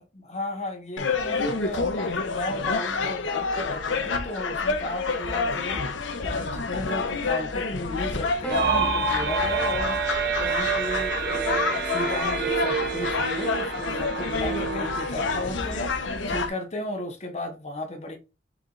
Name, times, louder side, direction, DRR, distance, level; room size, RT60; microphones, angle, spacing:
voice 1, 0.3-6.0 6.2-10.0 10.4-18.2, left 1 dB, 35° left, 1.0 m, -34 dB
sound 1, 1.0-16.5, left 4 dB, 90° left, 0.7 m, -28 dB
Piano, 8.4-12.9 14.1-14.8, right 1 dB, 5° left, 1.0 m, -41 dB
sound 2, 8.5-16.1, right 5 dB, 60° right, 0.7 m, -28 dB
4.6 x 2.4 x 3.9 m
head